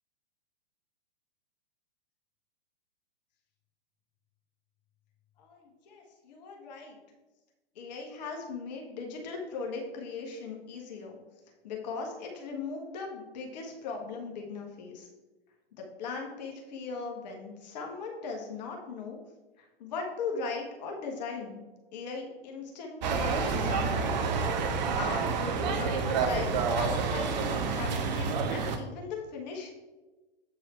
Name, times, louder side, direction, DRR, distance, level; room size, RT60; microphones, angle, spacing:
voice 1, 5.4-7.0 7.7-11.1 11.6-15.1 15.8-19.2 19.6-21.6 21.9-24.2 25.0-29.7, left 4 dB, 45° left, 1 dB, 1.4 m, -38 dB
sound 1, 23.0-28.8, right 5 dB, 45° right, 1.0 m, -29 dB
8.0 x 4.7 x 4.4 m, 1.2 s
figure-of-eight pair, 105°, 29 cm